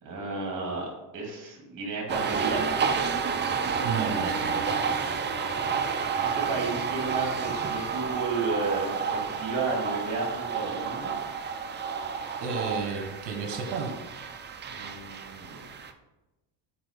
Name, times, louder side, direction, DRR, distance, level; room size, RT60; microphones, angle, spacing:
voice 1, 0.0-2.7 6.2-11.1 14.6-15.6, right 3 dB, 40° right, -1 dB, 2.4 m, -33 dB
sound 1, 2.1-15.9, right 6 dB, 25° right, 0.5 m, -30 dB
Bowed string instrument, 3.7-8.7, left 1 dB, 10° left, 0.9 m, -44 dB
voice 2, 3.8-4.9 12.4-13.9, right 5 dB, 60° right, 4 dB, 1.4 m, -32 dB
6.0 x 4.8 x 5.1 m, 1.0 s
cardioid pair, 120°, 48 cm